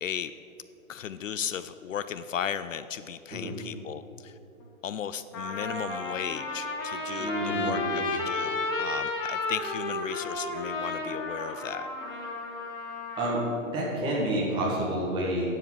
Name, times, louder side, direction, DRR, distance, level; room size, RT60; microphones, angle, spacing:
voice 1, 0.0-0.3 0.9-4.4 4.8-11.9, left 8 dB, 65° left, 13 dB, 0.6 m, -35 dB
Trumpet, 4.6-4.7 5.3-13.3, left 2 dB, 15° left, 0.9 m, -32 dB
voice 2, 7.2-7.9 13.2-15.5, right 1 dB, 10° right, -4 dB, 1.7 m, -29 dB
10.0 x 7.6 x 7.8 m, 2.9 s
hypercardioid pair, 165°, 42 cm